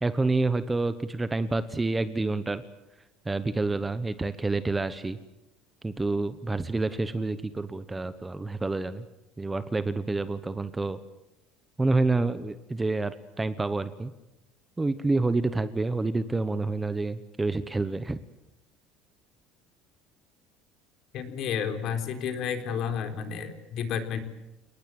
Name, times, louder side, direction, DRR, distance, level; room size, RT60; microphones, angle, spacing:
voice 1, 0.0-2.6 3.3-5.2 5.8-9.0 9.4-11.0 11.8-14.1 14.8-18.2, right 3 dB, 10° right, 12 dB, 1.0 m, -28 dB
voice 2, 21.1-24.2, left 7 dB, 45° left, 8 dB, 4.0 m, -31 dB
29.5 x 19.5 x 7.7 m, 0.96 s
cardioid pair, 160°, 0 cm